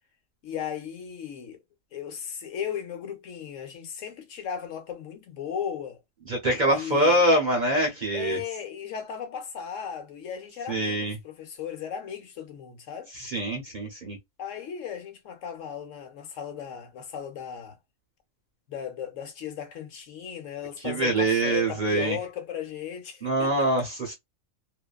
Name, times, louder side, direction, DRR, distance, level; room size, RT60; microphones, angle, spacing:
voice 1, 0.4-1.6 1.9-6.0 6.7-7.3 8.1-13.1 14.4-17.8 18.7-23.7, left 8 dB, 70° left, 1.0 m, -36 dB
voice 2, 6.3-8.4 10.7-11.2 13.1-14.2 20.8-22.2 23.2-24.1, right 1 dB, 45° right, 0.7 m, -24 dB
2.6 x 2.3 x 2.2 m
omnidirectional pair, 1.4 m